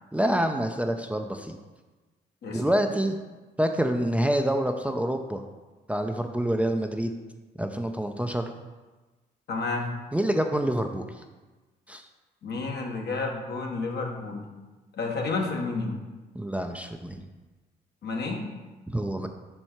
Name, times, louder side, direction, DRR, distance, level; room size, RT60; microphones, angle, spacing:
voice 1, 0.1-1.6 2.5-3.2 3.6-5.4 5.9-7.1 7.6-8.5 10.1-11.0 11.9-12.0 16.3-17.2 18.9-19.3, right 1 dB, 5° right, 5 dB, 0.5 m, -27 dB
voice 2, 9.5-9.9 12.4-14.4 14.9-16.0 18.0-18.4, left 3 dB, 60° left, 1 dB, 1.2 m, -30 dB
5.4 x 4.5 x 4.4 m, 1.2 s
supercardioid pair, 55°, 19 cm